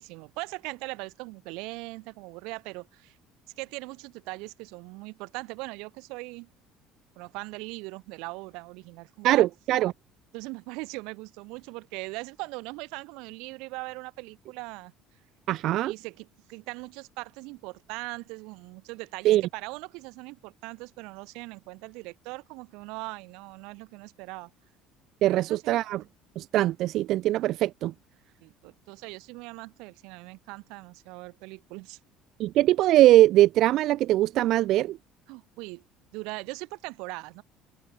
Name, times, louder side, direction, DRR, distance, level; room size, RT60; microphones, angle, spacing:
voice 1, 0.0-3.2 3.6-6.5 7.2-9.5 10.3-14.9 15.8-24.5 25.2-25.8 28.4-32.0 35.3-35.8 36.1-37.4, right 26 dB, 80° right, 1.7 m, -40 dB
voice 2, 9.2-9.9 15.5-15.9 19.2-19.4 25.2-26.0 26.4-27.9 32.4-35.0, right 15 dB, 50° right, 0.8 m, -21 dB
open air
cardioid pair, 165°, 0 cm